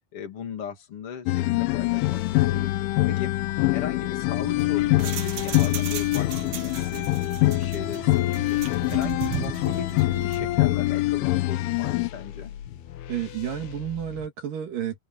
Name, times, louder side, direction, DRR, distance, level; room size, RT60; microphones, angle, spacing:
voice 1, 0.1-2.7 3.1-3.3 3.7-7.1 7.4-8.6 8.9-12.5, left 6 dB, 35° left, 3.0 m, -38 dB
sound 1, 1.3-12.1, left 18 dB, 85° left, 3.4 m, -24 dB
sound 2, 1.5-14.3, left 10 dB, 65° left, 2.8 m, -41 dB
sound 3, 4.4-10.5, right 10 dB, 75° right, 1.7 m, -37 dB
voice 2, 13.1-15.0, right 10 dB, 55° right, 3.2 m, -31 dB
omnidirectional pair, 5.5 m